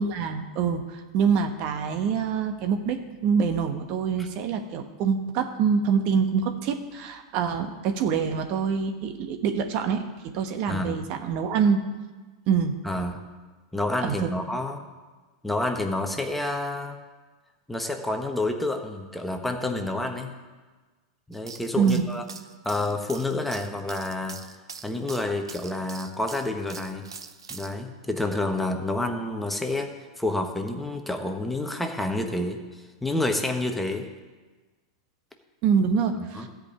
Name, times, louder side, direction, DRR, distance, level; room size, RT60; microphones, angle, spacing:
voice 1, 0.0-11.8 12.5-12.8 14.0-14.3 21.8-22.1 35.6-36.5, right 6 dB, 50° right, 6 dB, 1.1 m, -25 dB
voice 2, 10.7-11.1 12.8-13.2 13.7-14.8 15.4-17.0 17.7-20.3 21.3-22.2 22.6-24.4 24.8-27.0 27.5-29.9 30.2-34.0 36.1-36.5, left 2 dB, 5° left, 4 dB, 1.2 m, -29 dB
sound 1, 21.3-27.7, right 5 dB, 90° right, 0.8 m, -43 dB
13.5 x 5.3 x 8.7 m, 1.3 s
hypercardioid pair, 105°, 3 cm